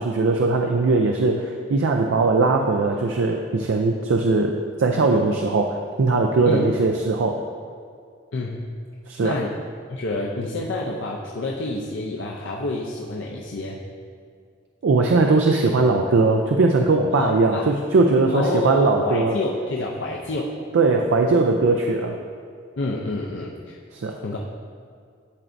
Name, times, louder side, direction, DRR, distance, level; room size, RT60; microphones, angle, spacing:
voice 1, 0.0-7.4 9.1-9.4 14.8-19.3 20.7-22.2 23.9-24.2, right 3 dB, 70° right, 3 dB, 0.4 m, -20 dB
voice 2, 8.3-8.6 9.2-9.5 9.9-13.8 17.1-17.7 18.3-20.5 22.8-23.8 24.2-24.4, left 2 dB, 65° left, -2 dB, 0.6 m, -28 dB
11.5 x 4.5 x 2.6 m, 2.2 s
head